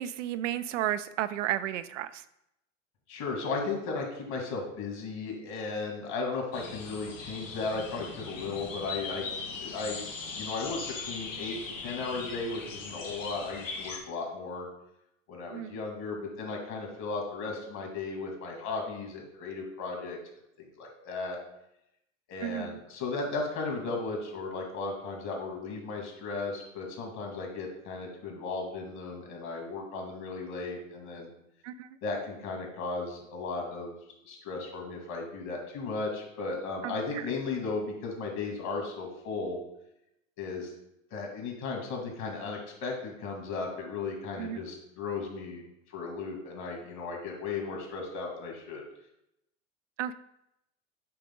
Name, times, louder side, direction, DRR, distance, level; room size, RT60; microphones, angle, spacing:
voice 1, 0.0-2.2 15.5-15.8 22.4-22.8 31.6-32.0 36.8-37.2 44.4-44.6 50.0-50.1, right 12 dB, 75° right, 12 dB, 0.5 m, -33 dB
voice 2, 3.1-9.2 9.6-10.1 10.3-10.8 11.1-14.7 15.3-20.2 20.6-21.4 22.3-31.3 32.0-34.0 34.2-39.6 40.4-40.7 41.1-45.6 45.9-48.8, left 3 dB, 50° left, 1 dB, 2.3 m, -35 dB
sound 1, 6.5-14.0, left 4 dB, 80° left, 1.4 m, -40 dB
8.6 x 3.7 x 3.8 m, 0.82 s
hypercardioid pair, 85°, 38 cm